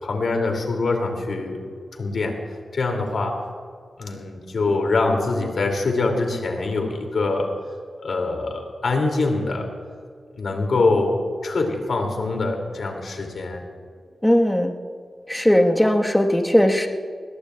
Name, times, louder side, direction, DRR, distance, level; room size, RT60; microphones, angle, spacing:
voice 1, 0.0-1.6 1.9-2.4 2.7-3.4 4.0-7.5 8.0-9.7 10.4-11.2 11.4-13.6, left 3 dB, 75° left, 2 dB, 2.6 m, -24 dB
voice 2, 14.2-14.7 15.3-16.9, equal, 5° left, 3 dB, 1.3 m, -18 dB
21.0 x 18.0 x 2.4 m, 2.1 s
cardioid pair, 70°, 0 cm